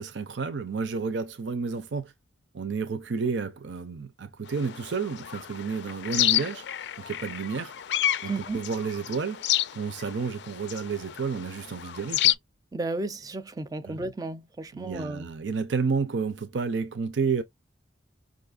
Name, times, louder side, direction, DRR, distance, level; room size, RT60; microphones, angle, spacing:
voice 1, 0.0-2.1 2.5-6.6 7.0-7.7 8.2-9.4 9.7-12.3 13.8-14.0 14.7-17.4, right 5 dB, 85° right, 0.6 m, -31 dB
sound 1, 4.5-12.3, left 13 dB, 70° left, 0.3 m, -30 dB
voice 2, 8.2-8.6 12.7-15.3, right 2 dB, 20° right, 0.4 m, -33 dB
5.4 x 2.5 x 2.4 m
head